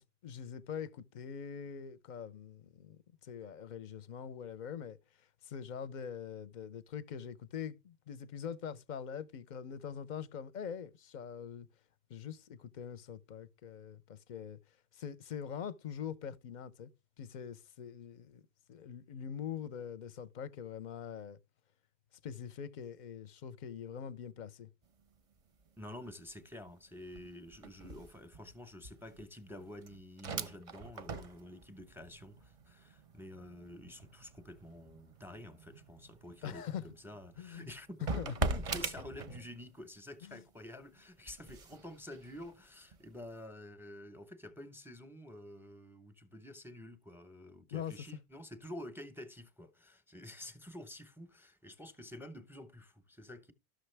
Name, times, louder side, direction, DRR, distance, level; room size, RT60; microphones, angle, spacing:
voice 1, 0.0-5.0 5.4-11.7 12.1-14.6 14.9-16.9 17.2-18.4 18.7-21.4 22.2-24.7 36.4-36.9 37.4-37.7 38.2-38.3 40.2-40.4 47.7-47.9, left 8 dB, 50° left, 0.6 m, -43 dB
sound 1, 24.8-25.2 25.4-39.8 40.2-43.3, right 3 dB, 40° right, 0.6 m, -43 dB
voice 2, 25.8-38.2 38.5-53.5, left 1 dB, ahead, 0.7 m, -49 dB
12.5 x 6.4 x 3.3 m
omnidirectional pair, 1.1 m